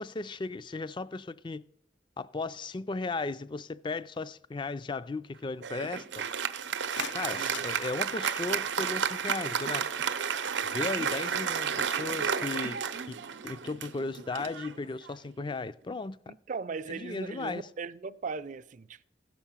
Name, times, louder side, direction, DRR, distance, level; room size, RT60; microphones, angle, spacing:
voice 1, 0.0-1.6 2.2-6.3 7.1-9.9 10.6-12.8 13.1-13.2 13.4-16.3 16.9-17.7, left 3 dB, 25° left, 0.4 m, -36 dB
Applause, 5.6-15.4, right 7 dB, 90° right, 0.7 m, -32 dB
sound 1, 6.7-8.6, left 6 dB, 85° left, 0.7 m, -44 dB
voice 2, 16.3-19.0, right 4 dB, 45° right, 0.4 m, -38 dB
16.0 x 5.8 x 7.3 m
head